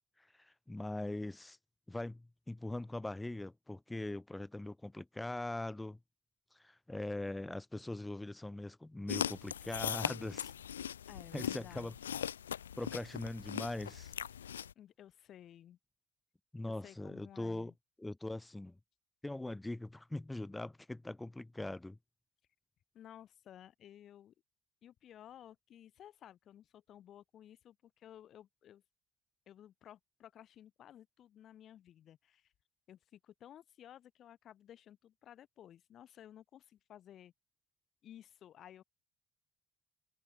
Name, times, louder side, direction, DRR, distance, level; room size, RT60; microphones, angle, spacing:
voice 1, 0.2-1.6 1.9-6.0 6.5-10.5 11.3-11.9 12.8-14.1 16.5-17.7 18.0-18.8 19.2-22.0, left 2 dB, 10° left, 1.2 m, -41 dB
sound 1, 9.1-14.7, left 9 dB, 80° left, 0.8 m, -40 dB
voice 2, 11.1-12.0 14.7-15.8 16.6-17.7 22.9-24.3 24.8-28.8 29.5-32.5 32.9-37.3 38.0-38.8, left 10 dB, 50° left, 4.9 m, -56 dB
figure-of-eight pair, 50°, 0 cm